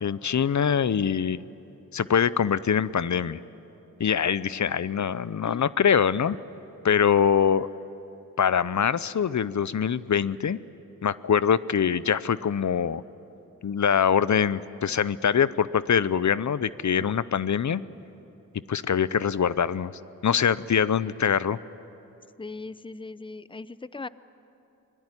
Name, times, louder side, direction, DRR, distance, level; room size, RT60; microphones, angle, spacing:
voice 1, 0.0-1.4 1.9-3.4 4.0-6.4 6.8-7.7 8.4-10.6 11.0-13.0 13.6-17.8 18.7-19.9 20.2-21.6, left 7 dB, 60° left, 17 dB, 0.7 m, -23 dB
voice 2, 22.4-24.1, left 3 dB, 15° left, 16 dB, 0.6 m, -39 dB
25.0 x 19.5 x 9.8 m, 2.9 s
cardioid pair, 55°, 33 cm